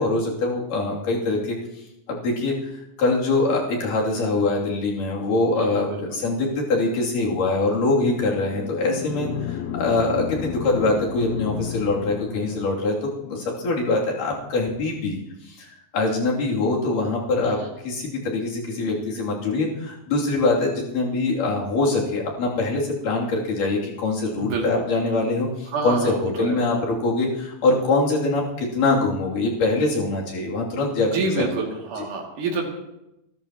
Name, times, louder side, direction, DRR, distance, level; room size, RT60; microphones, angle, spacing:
voice 1, 0.0-1.6 2.1-2.7 3.0-15.7 15.9-17.6 17.8-31.5 32.0-32.1, left 2 dB, 60° left, -3 dB, 4.3 m, -23 dB
voice 2, 5.6-6.0 17.4-17.7 24.4-24.7 25.7-26.6 31.1-32.7, right 3 dB, 60° right, 0 dB, 3.9 m, -28 dB
sound 1, 8.0-13.0, left 10 dB, 85° left, 3.0 m, -32 dB
30.0 x 13.0 x 3.0 m, 0.88 s
omnidirectional pair, 4.4 m